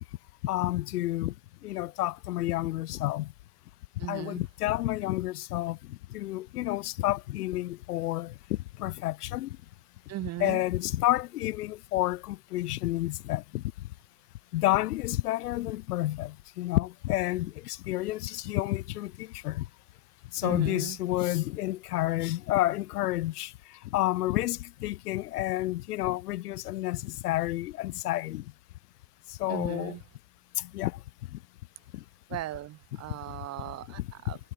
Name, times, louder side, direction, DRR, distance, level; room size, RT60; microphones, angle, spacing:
voice 1, 0.4-1.3 1.6-3.3 4.1-9.6 10.4-13.6 14.5-19.6 20.3-23.5 23.9-28.4 29.4-30.0 30.6-31.0 34.0-34.1, left 16 dB, 75° left, 0.8 m, -30 dB
voice 2, 4.0-4.4 10.1-10.6 20.4-21.0 29.5-30.0 32.3-34.0 34.2-34.4, right 15 dB, 35° right, 0.7 m, -37 dB
figure-of-eight pair, 65°, 47 cm